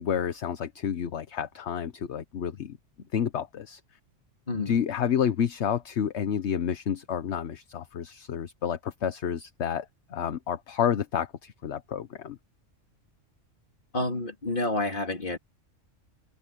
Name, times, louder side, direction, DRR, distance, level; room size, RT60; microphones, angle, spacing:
voice 1, 0.0-2.8 3.1-3.8 4.6-12.4, left 8 dB, 65° left, 1.2 m, -30 dB
voice 2, 4.5-4.8 13.9-15.4, left 2 dB, 45° left, 2.7 m, -29 dB
omnidirectional pair, 1.3 m